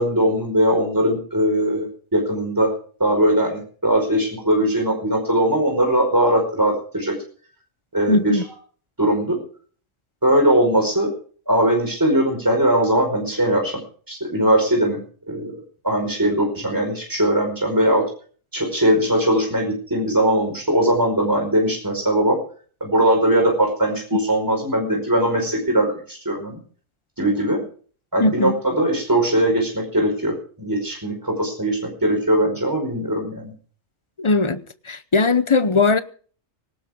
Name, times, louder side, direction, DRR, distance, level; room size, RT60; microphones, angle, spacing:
voice 1, 0.0-2.7 3.0-7.1 7.9-8.2 9.0-9.4 10.2-11.1 11.5-13.8 14.1-15.0 15.3-15.5 15.8-18.1 18.5-22.4 22.8-26.6 27.2-27.6 28.1-33.5, right 1 dB, 15° right, 5.0 m, -20 dB
voice 2, 8.1-8.4 28.2-28.6 34.2-34.6 34.9-36.0, left 3 dB, 30° left, 0.7 m, -18 dB
18.5 x 17.0 x 3.7 m
omnidirectional pair, 1.3 m